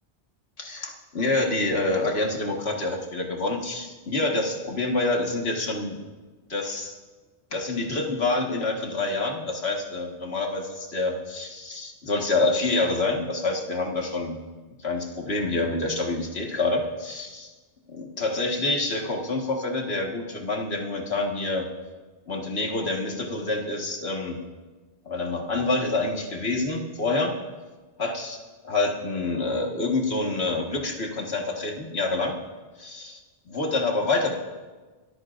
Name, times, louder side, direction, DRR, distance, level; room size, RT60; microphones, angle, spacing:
voice 1, 0.6-6.0 6.5-6.9 7.5-14.4 14.8-17.5 17.9-21.6 22.3-24.4 25.1-27.3 28.0-28.4 28.6-32.4 32.8-33.2 33.5-34.3, left 2 dB, 80° left, 0 dB, 2.0 m, -27 dB
25.0 x 14.0 x 2.6 m, 1.3 s
omnidirectional pair, 1.0 m